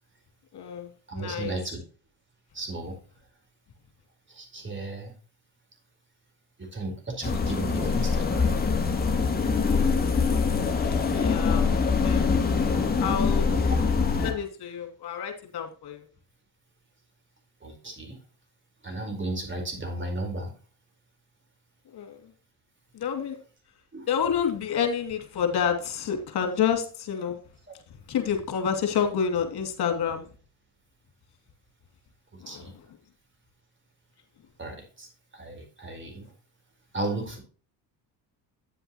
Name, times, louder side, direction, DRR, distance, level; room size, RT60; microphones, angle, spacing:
voice 1, 0.5-1.6 11.1-11.6 12.0-12.3 13.0-13.5 14.2-16.0 21.9-22.3 22.9-23.4 24.1-27.4 28.1-30.3 32.4-32.7, left 7 dB, 55° left, 5 dB, 2.8 m, -28 dB
voice 2, 1.1-1.8 2.5-2.9 4.3-5.1 6.6-8.9 13.4-13.7 17.6-18.2 18.8-20.5 23.9-24.1 27.7-27.8 32.5-32.7 34.6-36.3 36.9-37.4, right 2 dB, 25° right, 4 dB, 4.5 m, -35 dB
sound 1, 7.2-14.3, left 5 dB, 20° left, 2.5 m, -24 dB
9.8 x 7.9 x 3.0 m, 0.37 s
supercardioid pair, 85°, 45 cm